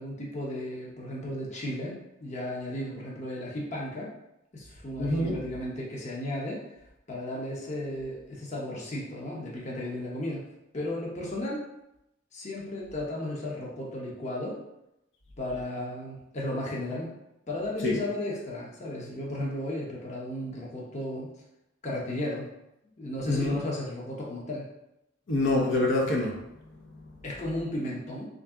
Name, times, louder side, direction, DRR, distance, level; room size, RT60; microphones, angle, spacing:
voice 1, 0.0-4.1 4.5-6.6 7.1-10.4 10.7-11.6 12.3-14.6 15.4-17.1 17.5-21.3 21.8-22.5 23.0-24.6 27.2-28.3, left 1 dB, 35° left, -4 dB, 0.7 m, -34 dB
voice 2, 5.0-5.3 17.8-18.0 23.3-23.6 25.3-26.3 27.0-27.1, left 2 dB, 70° left, -2 dB, 0.7 m, -25 dB
3.4 x 2.6 x 3.5 m, 0.87 s
head